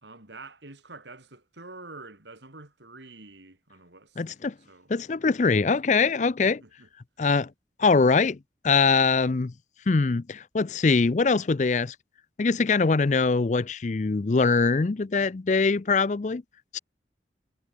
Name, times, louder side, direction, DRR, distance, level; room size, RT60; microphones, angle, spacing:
voice 1, 0.0-5.0 5.7-5.8 6.4-6.9, right 3 dB, 80° right, 4.1 m, -47 dB
voice 2, 4.2-4.5 4.9-6.6 7.2-7.5 7.8-8.4 8.6-9.5 9.9-11.9 12.4-16.4 16.7-16.8, left 4 dB, 40° left, 0.5 m, -23 dB
head